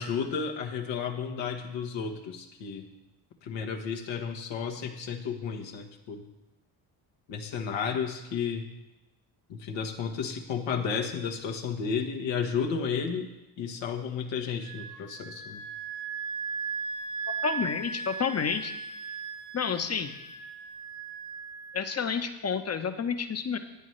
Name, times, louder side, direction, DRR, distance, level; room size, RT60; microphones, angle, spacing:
voice 1, 0.0-2.9 3.4-6.2 7.3-8.7 9.5-13.3 13.6-15.6, left 6 dB, 70° left, 4 dB, 1.4 m, -32 dB
Wind instrument woodwind instrument, 14.6-22.1, right 5 dB, 70° right, 1.7 m, -37 dB
voice 2, 17.4-18.7 19.5-20.1 21.7-23.6, left 6 dB, 35° left, 8 dB, 1.1 m, -30 dB
15.0 x 9.3 x 3.3 m, 0.97 s
supercardioid pair, 60°, 45 cm